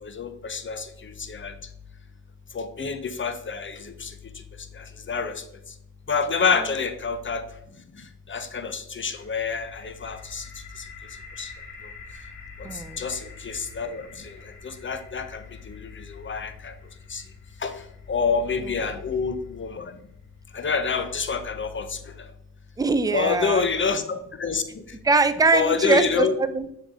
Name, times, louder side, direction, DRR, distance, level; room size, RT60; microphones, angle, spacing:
voice 1, 0.0-1.5 2.5-4.1 4.7-5.4 6.1-7.4 8.3-10.5 10.8-10.9 11.4-11.5 13.0-14.4 14.6-16.7 17.1-17.2 17.6-17.8 18.1-19.9 20.5-22.3 23.1-24.8 25.5-26.3, left 5 dB, 25° left, 10 dB, 0.8 m, -27 dB
sound 1, 9.1-20.9, left 4 dB, 70° left, 1.4 m, -48 dB
voice 2, 12.6-13.0 18.6-19.0 22.8-23.6 25.0-26.7, right 3 dB, 10° right, 11 dB, 0.5 m, -22 dB
6.5 x 4.0 x 3.6 m, 0.77 s
supercardioid pair, 50°, 46 cm